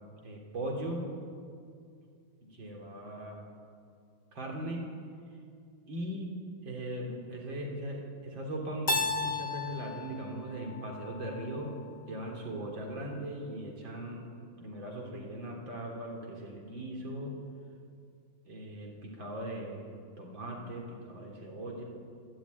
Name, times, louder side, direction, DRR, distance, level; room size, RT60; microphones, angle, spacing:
voice 1, 0.2-1.0 2.4-3.5 4.3-4.8 5.9-6.3 6.6-8.9 9.2-11.8 12.1-14.2 14.6-17.3 18.4-19.9 20.2-21.8, right 1 dB, 75° right, 0 dB, 4.2 m, -39 dB
Keyboard (musical), 8.9-11.7, left 3 dB, 40° left, 2.2 m, -34 dB
28.0 x 13.5 x 9.7 m, 2.3 s
omnidirectional pair, 2.1 m